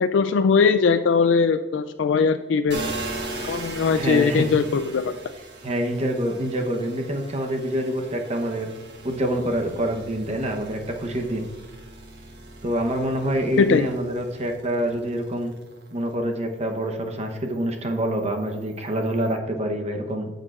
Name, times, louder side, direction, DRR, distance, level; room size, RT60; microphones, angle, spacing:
voice 1, 0.0-2.9 3.5-5.1 13.6-13.9, left 5 dB, 75° left, 10 dB, 0.4 m, -20 dB
sound 1, 2.7-16.1 16.5-19.4, right 2 dB, 65° right, 1.6 m, -39 dB
voice 2, 3.9-4.5 5.6-8.7 9.0-11.5 12.6-15.5 15.9-20.3, right 1 dB, 35° right, 4 dB, 0.9 m, -26 dB
11.0 x 6.5 x 2.4 m, 1.4 s
head